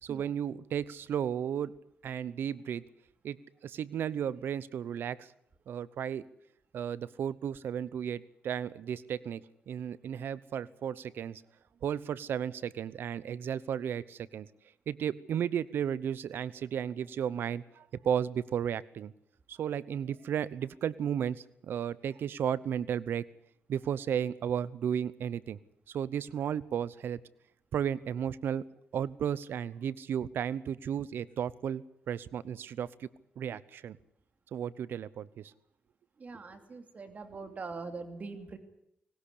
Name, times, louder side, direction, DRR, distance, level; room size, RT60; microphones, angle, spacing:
voice 1, 0.0-1.7 2.0-2.8 3.2-5.3 5.7-6.2 6.7-11.4 11.8-14.5 14.9-19.1 19.5-23.3 23.7-25.6 25.9-27.2 27.7-28.6 28.9-33.1 33.4-34.0 34.5-35.5, right 8 dB, 80° right, 19 dB, 0.8 m, -34 dB
voice 2, 36.2-38.6, right 4 dB, 45° right, 7 dB, 2.8 m, -42 dB
19.5 x 19.0 x 8.5 m, 0.73 s
cardioid pair, 90°, 4 cm